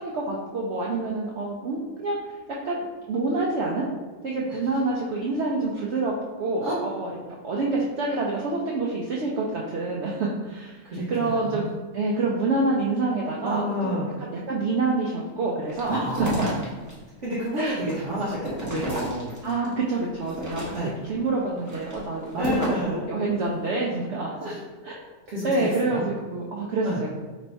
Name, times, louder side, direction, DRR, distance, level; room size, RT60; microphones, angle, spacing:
voice 1, 0.0-2.4 2.6-2.8 3.1-3.9 4.2-7.2 7.4-10.8 11.1-11.7 11.9-13.9 14.2-16.1 17.6-17.8 18.6-18.7 19.4-20.8 21.1-24.3 24.8-24.9 25.4-27.1, right 3 dB, 80° right, -3 dB, 0.6 m, -27 dB
voice 2, 10.8-11.7 13.4-14.1 15.8-16.3 17.2-19.3 20.7-20.9 22.4-23.1 24.4-24.6 25.3-26.0 26.8-27.0, equal, 55° right, -7 dB, 0.9 m, -30 dB
sound 1, 15.7-16.9 17.4-19.7 20.2-21.0 21.6-22.9, right 1 dB, 20° right, 0.5 m, -32 dB
3.1 x 2.6 x 4.3 m, 1.3 s
omnidirectional pair, 1.7 m